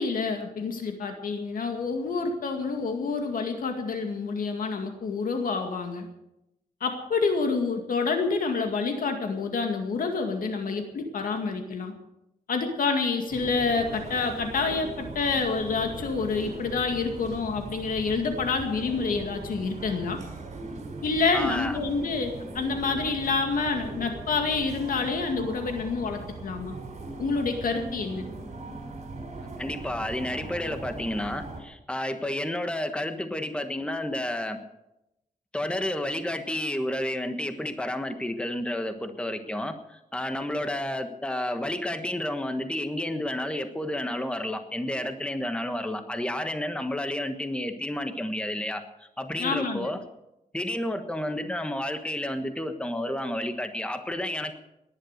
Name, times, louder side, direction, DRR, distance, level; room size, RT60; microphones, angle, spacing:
voice 1, 0.0-6.1 6.8-11.9 12.5-20.2 21.0-26.8 27.2-28.3 49.4-49.9, left 4 dB, 70° left, 4 dB, 2.1 m, -28 dB
sound 1, 13.3-31.6, right 3 dB, 50° right, 4.9 m, -39 dB
voice 2, 21.3-21.8 29.4-34.6 35.5-50.0 50.5-54.6, left 1 dB, 5° left, 7 dB, 1.4 m, -31 dB
18.5 x 11.0 x 6.6 m, 0.88 s
wide cardioid pair, 130°, 15 cm